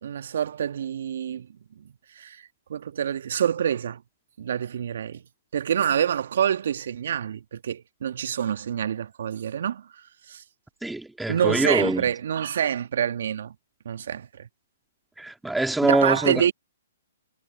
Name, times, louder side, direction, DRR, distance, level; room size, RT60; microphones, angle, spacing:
voice 1, 0.0-1.5 2.1-4.0 4.4-5.2 5.5-10.4 11.3-13.5 13.9-14.5 15.8-16.5, right 9 dB, 60° right, 1.6 m, -27 dB
voice 2, 10.8-12.0 15.2-16.5, right 2 dB, 5° right, 2.5 m, -24 dB
figure-of-eight pair, 125°, 0 cm